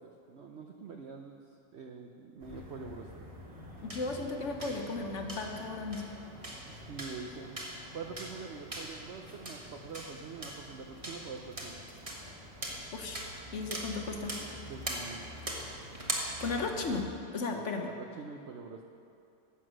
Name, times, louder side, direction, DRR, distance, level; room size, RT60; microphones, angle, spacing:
voice 1, 0.0-1.4 1.7-3.3 6.7-7.5 7.9-11.8 14.6-15.2 17.5-18.8, right 5 dB, 70° right, 3 dB, 0.6 m, -45 dB
sound 1, 2.4-17.2, right 1 dB, 20° right, 1.3 m, -42 dB
voice 2, 3.8-6.0 12.9-13.3 13.5-14.3 16.4-17.9, left 3 dB, 50° left, 3 dB, 1.0 m, -35 dB
11.5 x 7.9 x 6.3 m, 2.5 s
omnidirectional pair, 1.9 m